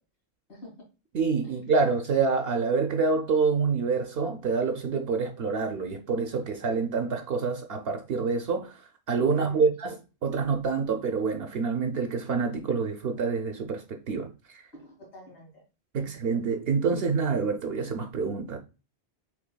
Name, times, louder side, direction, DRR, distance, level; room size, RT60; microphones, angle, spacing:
voice 1, 0.5-0.8 1.4-1.6 9.2-9.7 14.7-15.6 16.0-16.2, equal, 85° left, 2.5 m, -47 dB
voice 2, 1.1-8.8 9.1-14.6 15.9-18.6, right 5 dB, 70° right, 0.8 m, -27 dB
6.0 x 3.3 x 2.2 m
omnidirectional pair, 1.1 m